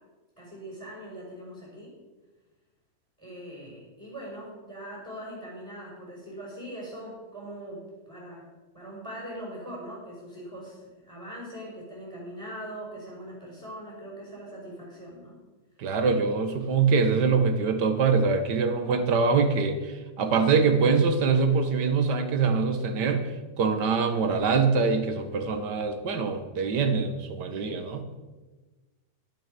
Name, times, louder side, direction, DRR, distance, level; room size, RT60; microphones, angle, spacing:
voice 1, 0.4-2.0 3.2-8.4 8.7-15.4, right 1 dB, 10° left, -4 dB, 5.2 m, -41 dB
voice 2, 15.8-23.3 23.6-28.1, right 5 dB, 70° right, 8 dB, 1.8 m, -24 dB
11.5 x 11.5 x 5.2 m, 1.2 s
omnidirectional pair, 1.9 m